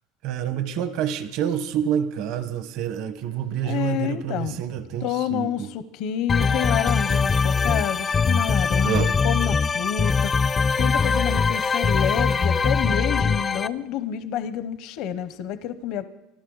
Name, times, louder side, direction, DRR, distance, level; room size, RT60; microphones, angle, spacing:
voice 1, 0.2-5.7 8.8-9.1, right 9 dB, 65° right, 10 dB, 1.2 m, -27 dB
voice 2, 3.6-4.6 5.0-10.3 10.8-16.0, left 10 dB, 65° left, 12 dB, 0.8 m, -28 dB
sound 1, 6.3-13.7, left 5 dB, 25° left, 0.4 m, -22 dB
24.5 x 13.0 x 4.0 m, 0.92 s
cardioid pair, 130°, 0 cm